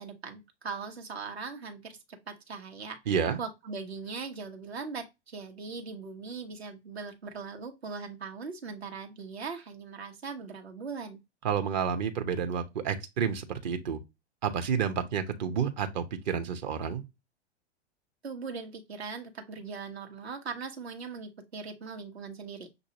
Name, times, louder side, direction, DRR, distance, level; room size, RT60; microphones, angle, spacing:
voice 1, 0.0-3.0 3.4-11.2 18.2-22.8, right 5 dB, 70° right, 1.3 m, -40 dB
voice 2, 3.1-3.4 11.4-14.0 14.4-17.0, right 7 dB, 45° right, 0.8 m, -30 dB
6.2 x 2.6 x 2.9 m
figure-of-eight pair, 100°, 33 cm